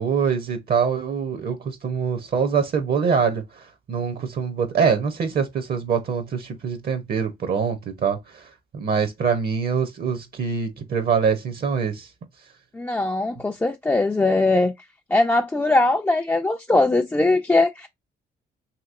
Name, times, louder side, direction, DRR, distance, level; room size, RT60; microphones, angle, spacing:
voice 1, 0.0-12.1, right 6 dB, 50° right, 0.7 m, -24 dB
voice 2, 12.7-14.7 15.1-17.9, left 2 dB, 10° left, 0.3 m, -20 dB
3.0 x 2.9 x 2.4 m
cardioid pair, 90°, 20 cm